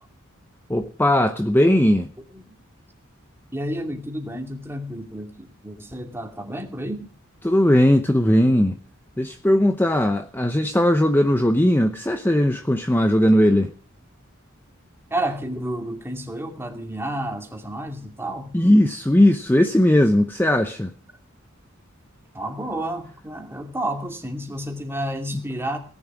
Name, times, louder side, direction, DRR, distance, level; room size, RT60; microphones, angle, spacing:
voice 1, 0.7-2.1 7.4-8.8 9.2-13.7 18.5-20.9, left 1 dB, 10° left, 6 dB, 0.9 m, -18 dB
voice 2, 3.5-7.1 8.5-8.6 15.1-18.5 22.3-25.8, right 1 dB, 10° right, 3 dB, 2.6 m, -30 dB
18.0 x 11.0 x 6.1 m, 0.41 s
head